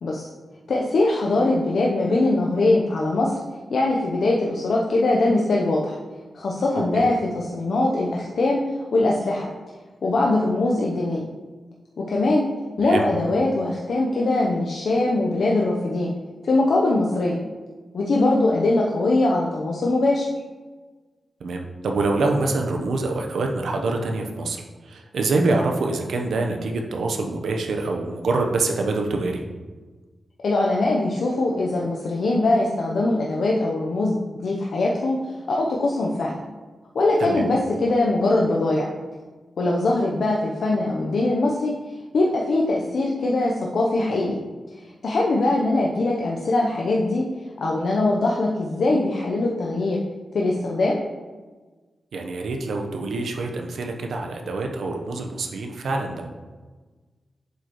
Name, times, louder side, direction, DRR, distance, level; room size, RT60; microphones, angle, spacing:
voice 1, 0.7-3.4 3.7-6.0 6.3-8.6 8.9-9.5 10.0-11.2 12.0-12.5 12.8-16.1 16.4-17.4 17.9-20.3 30.4-35.2 35.5-36.4 36.9-38.9 39.6-41.8 42.1-44.4 45.0-47.2 47.6-50.0 50.3-51.0, left 2 dB, 70° left, -2 dB, 0.7 m, -22 dB
voice 2, 12.8-13.1 21.4-29.4 37.2-37.5 52.1-56.3, right 3 dB, 85° right, 3 dB, 0.8 m, -25 dB
7.9 x 5.1 x 3.0 m, 1.3 s
wide cardioid pair, 115°, 0 cm